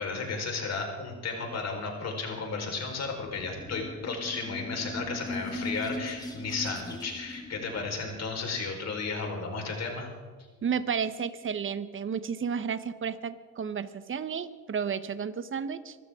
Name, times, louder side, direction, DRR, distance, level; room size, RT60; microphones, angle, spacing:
voice 1, 0.0-10.1, left 4 dB, 60° left, 2 dB, 4.5 m, -34 dB
sound 1, 3.1-8.4, left 1 dB, 15° left, 2.4 m, -39 dB
voice 2, 10.6-16.0, right 6 dB, 40° right, 13 dB, 1.0 m, -32 dB
24.0 x 14.0 x 3.7 m, 1.4 s
cardioid pair, 90°, 30 cm